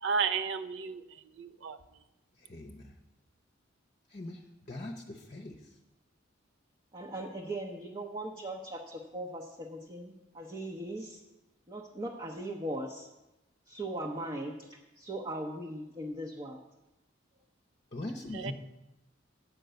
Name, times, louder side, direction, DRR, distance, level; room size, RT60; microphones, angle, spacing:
voice 1, 0.0-1.8 18.3-18.5, right 5 dB, 65° right, 11 dB, 0.5 m, -33 dB
voice 2, 2.4-2.9 4.1-4.4 4.7-5.6 17.9-18.5, left 2 dB, 40° left, 2 dB, 0.8 m, -41 dB
voice 3, 6.9-11.2 11.7-13.1 13.7-16.6, right 1 dB, 25° right, -1 dB, 0.8 m, -39 dB
9.1 x 5.3 x 7.8 m, 0.98 s
head